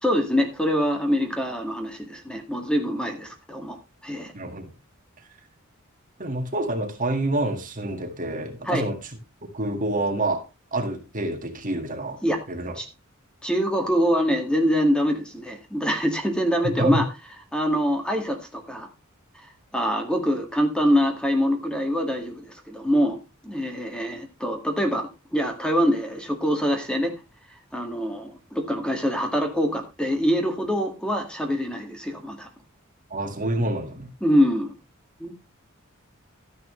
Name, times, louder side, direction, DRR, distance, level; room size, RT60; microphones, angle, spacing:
voice 1, 0.0-3.8 4.0-4.3 8.7-8.9 12.2-12.4 12.8-12.9 13.4-17.0 17.5-18.9 19.7-23.2 23.4-27.1 27.7-32.5 34.2-34.7 35.2-35.4, equal, 5° left, 4 dB, 2.0 m, -24 dB
voice 2, 4.3-4.7 6.2-9.0 9.5-10.4 10.7-12.2 12.5-12.8 16.8-17.1 33.1-34.1, right 2 dB, 40° right, 5 dB, 1.9 m, -27 dB
12.5 x 10.5 x 3.2 m, 0.26 s
head